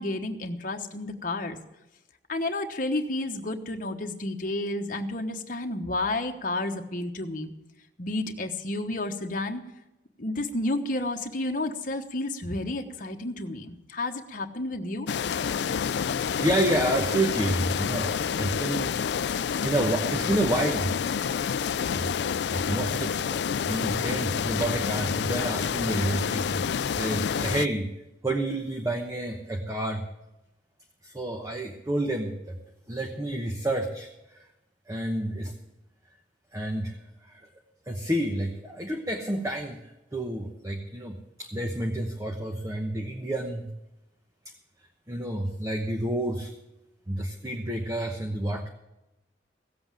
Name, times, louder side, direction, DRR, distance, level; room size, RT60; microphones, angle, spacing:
voice 1, 0.0-1.6 2.3-7.5 8.0-9.6 10.2-15.1, left 2 dB, 50° left, 4 dB, 1.1 m, -31 dB
sound 1, 15.1-27.7, left 7 dB, 70° left, 0.4 m, -28 dB
voice 2, 16.3-19.0 19.6-21.1 21.9-23.4 23.7-26.6 27.0-27.9 28.2-30.0 31.0-32.6 32.9-34.5 34.9-35.5 36.5-36.9 37.2-37.5 37.9-43.7 45.1-46.5 47.1-48.7, right 1 dB, 20° right, 3 dB, 1.0 m, -29 dB
16.0 x 7.9 x 7.5 m, 0.95 s
head